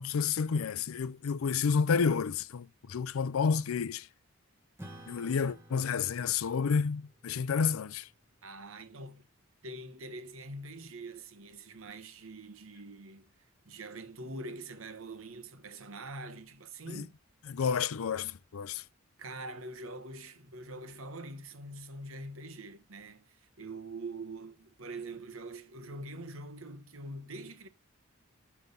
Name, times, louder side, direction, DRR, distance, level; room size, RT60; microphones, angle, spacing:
voice 1, 0.0-4.1 5.1-8.1 16.9-17.0 17.5-18.8, left 6 dB, 80° left, 0.5 m, -30 dB
Acoustic guitar / Strum, 4.8-9.6, right 1 dB, 10° right, 1.0 m, -55 dB
voice 2, 8.4-9.3 9.6-13.3 13.6-17.1 19.2-27.7, right 2 dB, 75° right, 1.1 m, -44 dB
6.2 x 5.7 x 5.2 m
head